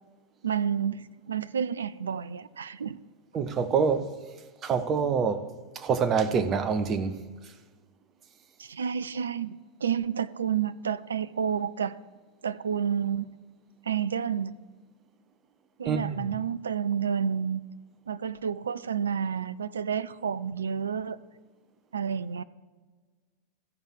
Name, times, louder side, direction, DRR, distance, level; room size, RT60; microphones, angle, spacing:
voice 1, 0.4-3.0 8.6-9.5 9.8-11.9 12.4-13.3 13.9-14.5 15.8-17.6 18.1-21.2 21.9-22.4, right 7 dB, 70° right, 0.3 m, -30 dB
voice 2, 3.3-4.1 4.6-5.4 5.8-7.2 15.9-16.2, right 6 dB, 30° right, 0.8 m, -26 dB
14.0 x 4.9 x 4.5 m
figure-of-eight pair, 90°, 0 cm